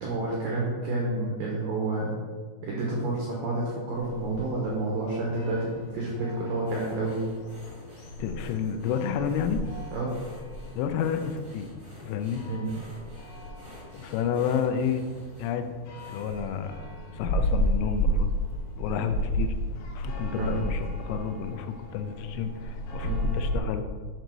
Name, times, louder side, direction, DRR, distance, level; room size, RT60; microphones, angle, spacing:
voice 1, 0.0-2.1 2.6-7.2 9.9-10.2 12.5-12.7 20.4-20.5 23.0-23.2, right 2 dB, 85° right, -4 dB, 1.9 m, -29 dB
sound 1, 3.9-23.6, equal, 70° left, 2.5 m, -33 dB
sound 2, 6.6-17.2 17.7-17.9 18.3-18.4, right 1 dB, 65° right, 0.7 m, -51 dB
voice 2, 8.2-9.7 10.7-11.7 12.0-12.4 13.9-15.1 15.4-15.8 16.1-16.7 17.1-18.3 18.8-19.5 19.9-23.9, left 7 dB, 90° left, 8 dB, 3.1 m, -30 dB
7.8 x 4.0 x 6.2 m, 1.5 s
omnidirectional pair, 5.5 m